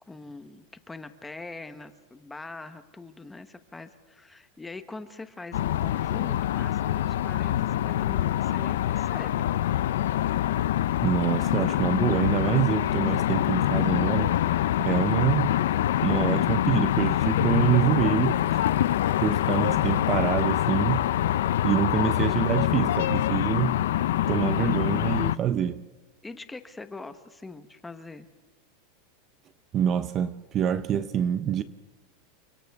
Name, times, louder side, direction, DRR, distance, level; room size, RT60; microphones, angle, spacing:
voice 1, 0.1-9.5 21.9-22.2 24.6-24.9 26.2-28.3, left 3 dB, 10° left, 1.1 m, -43 dB
sound 1, 5.5-25.4, left 12 dB, 85° left, 0.6 m, -25 dB
voice 2, 11.0-14.3 14.8-15.6 16.0-18.7 19.2-21.0 21.6-23.8 24.3-25.8 29.7-31.6, right 9 dB, 25° right, 0.7 m, -26 dB
30.0 x 24.5 x 3.6 m
supercardioid pair, 160°, 0 cm